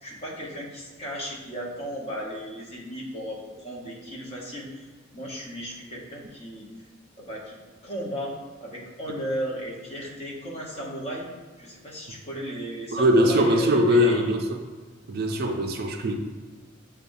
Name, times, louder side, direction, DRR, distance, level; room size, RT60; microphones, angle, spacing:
voice 1, 0.0-4.9 5.1-6.7 7.2-7.6 7.8-8.3 8.6-11.3 11.6-14.3, equal, 30° left, -3 dB, 0.8 m, -35 dB
voice 2, 12.9-14.5 15.1-16.2, equal, 50° right, 4 dB, 0.4 m, -21 dB
6.7 x 2.3 x 2.5 m, 1.4 s
head